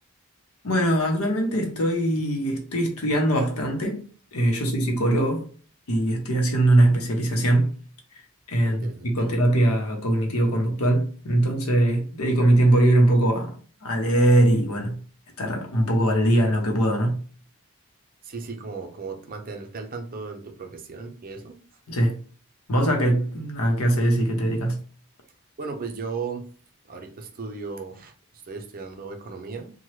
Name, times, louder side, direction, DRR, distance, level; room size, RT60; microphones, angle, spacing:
voice 1, 0.6-4.0 4.3-5.4 5.9-7.7 8.1-8.2 8.5-13.5 13.8-15.0 15.4-17.2 21.9-22.2 22.7-24.8, right 1 dB, 80° left, 0.8 m, -21 dB
voice 2, 8.6-9.3 18.2-21.5 25.6-26.4 26.9-28.1 28.5-29.7, right 4 dB, 40° right, 0.5 m, -36 dB
2.9 x 2.2 x 3.1 m
head